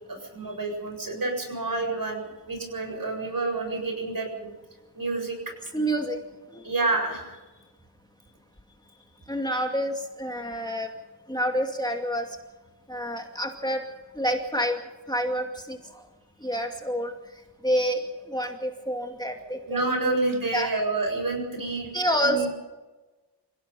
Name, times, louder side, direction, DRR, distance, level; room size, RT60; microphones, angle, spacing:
voice 1, 0.1-4.5 4.9-5.5 6.6-7.4 19.7-21.9 22.2-22.5, right 3 dB, 55° right, 3 dB, 7.5 m, -29 dB
voice 2, 5.7-6.2 6.5-6.7 9.3-10.9 11.3-12.3 12.9-13.8 14.1-14.8 15.1-16.0 16.4-17.1 17.6-20.1 20.5-20.7 21.9-22.5, equal, 10° left, 2 dB, 2.4 m, -28 dB
28.0 x 17.0 x 5.5 m, 1.2 s
wide cardioid pair, 85°, 41 cm